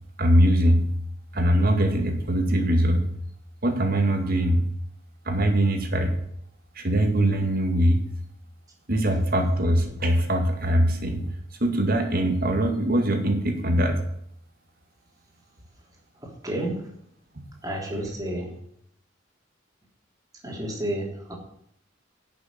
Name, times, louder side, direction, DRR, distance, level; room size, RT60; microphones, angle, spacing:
voice 1, 0.2-0.9 1.3-3.1 3.6-4.6 5.3-6.1 6.8-8.0 8.9-11.4 11.6-14.0, right 1 dB, 50° right, 5 dB, 2.2 m, -22 dB
voice 2, 16.2-16.8 17.6-18.5 20.4-21.3, right 1 dB, 20° right, -1 dB, 3.3 m, -31 dB
11.0 x 6.9 x 7.7 m, 0.72 s
head